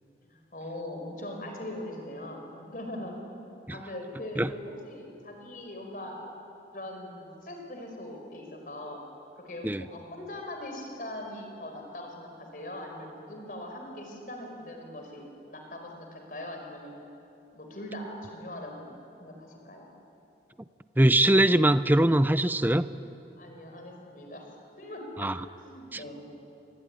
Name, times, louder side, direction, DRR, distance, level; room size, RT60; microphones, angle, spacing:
voice 1, 0.2-3.1 3.7-6.2 6.7-9.0 9.3-17.0 17.5-18.9 19.2-19.9 23.4-25.3 25.6-26.2, left 1 dB, 50° left, 2 dB, 5.1 m, -41 dB
voice 2, 21.0-22.9 25.2-25.4 25.9-26.0, right 1 dB, 10° right, 13 dB, 0.6 m, -22 dB
25.0 x 22.5 x 9.8 m, 2.8 s
head